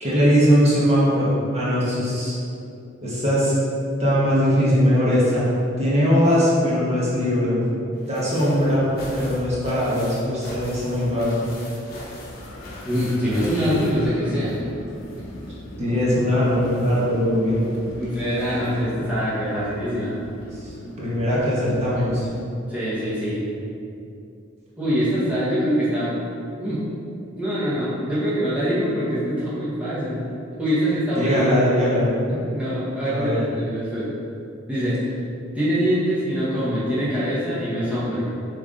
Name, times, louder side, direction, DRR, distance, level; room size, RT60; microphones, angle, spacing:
voice 1, 0.0-2.3 3.0-3.6 4.0-5.4 5.8-7.6 8.0-8.8 9.1-11.5 15.8-17.6 20.5-20.6 21.0-22.3 31.1-32.1 33.1-33.4, equal, 35° right, -8 dB, 1.4 m, -20 dB
sound 1, 7.9-14.7 15.0-18.9 20.0-20.1 20.4-20.5, left 1 dB, 50° left, 1.2 m, -41 dB
Wind, 12.1-22.4, left 1 dB, 85° left, 0.8 m, -38 dB
voice 2, 12.8-14.6 18.0-20.1 22.7-23.4 24.8-26.2 26.6-26.8 27.4-30.2 30.6-31.4 32.3-34.1 34.7-35.0 35.5-38.3, equal, 5° right, -11 dB, 1.3 m, -24 dB
7.3 x 3.5 x 3.8 m, 2.6 s
head